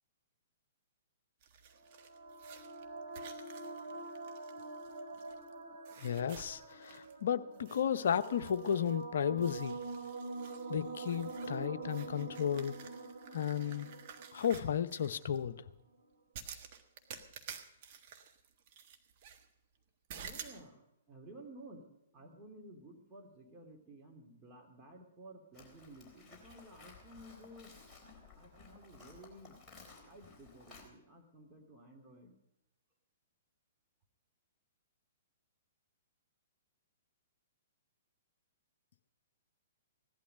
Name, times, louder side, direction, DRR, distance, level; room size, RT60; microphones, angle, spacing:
sound 1, 1.4-5.5 5.9-7.2 7.5-9.0 9.4-15.4 16.3-19.5 20.1-20.6, right 7 dB, 40° right, 1.5 m, -52 dB
sound 2, 1.8-15.4, right 3 dB, 70° right, 2.6 m, -45 dB
voice 1, 6.0-9.8 10.7-12.8 13.3-13.9 14.3-15.7, left 8 dB, 55° left, 0.7 m, -34 dB
voice 2, 20.2-27.7 28.3-29.6 30.0-32.3, right 1 dB, 15° right, 3.1 m, -54 dB
Livestock farm animals working animals, 25.5-30.9, left 4 dB, 5° left, 3.9 m, -57 dB
16.5 x 11.5 x 5.2 m
figure-of-eight pair, 115°, 0 cm